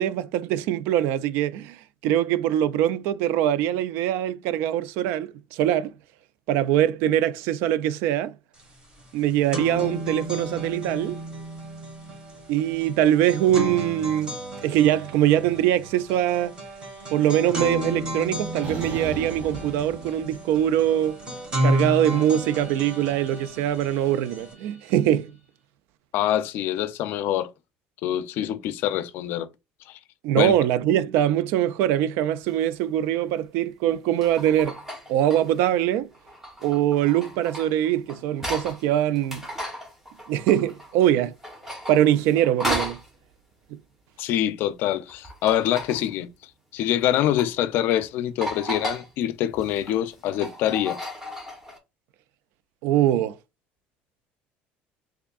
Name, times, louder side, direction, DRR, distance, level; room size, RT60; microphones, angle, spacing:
voice 1, 0.0-1.8 2.0-5.9 6.5-8.3 9.1-11.2 12.5-14.4 14.6-16.5 17.1-21.2 21.6-25.3 30.2-34.8 35.1-36.1 36.6-39.4 40.3-41.3 41.9-43.0 43.7-43.8 52.8-53.4, right 11 dB, 80° right, 0.3 m, -23 dB
sound 1, 8.6-8.7 9.0-24.5, equal, 25° right, 1.5 m, -32 dB
sound 2, 18.6-20.6 20.9-25.2, right 2 dB, 45° right, 1.6 m, -42 dB
voice 2, 26.1-27.5 28.0-29.5 29.9-30.0 30.3-30.6 44.2-46.3 46.7-51.0, left 12 dB, 65° left, 0.4 m, -25 dB
sound 3, 32.5-32.6 33.9-35.7 36.1-38.8 39.1-41.1 41.4-43.1 45.1-46.1 47.0-47.5 47.9-48.0 48.4-49.1 49.5-51.8, equal, 10° right, 1.1 m, -35 dB
3.4 x 3.4 x 2.3 m
cardioid pair, 140°, 4 cm